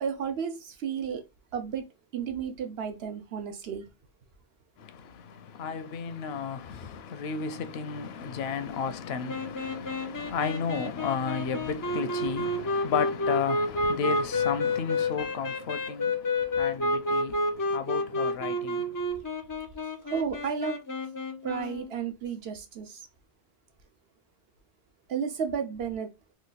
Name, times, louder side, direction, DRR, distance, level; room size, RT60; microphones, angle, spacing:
voice 1, 0.0-1.2 1.5-1.9 2.1-3.9 20.0-20.8 21.4-23.0 25.1-26.1, right 7 dB, 75° right, 0.9 m, -32 dB
voice 2, 4.8-19.1, left 6 dB, 80° left, 0.8 m, -33 dB
sound 1, 9.3-21.9, left 2 dB, 35° left, 0.3 m, -30 dB
3.1 x 2.3 x 3.9 m
omnidirectional pair, 1.0 m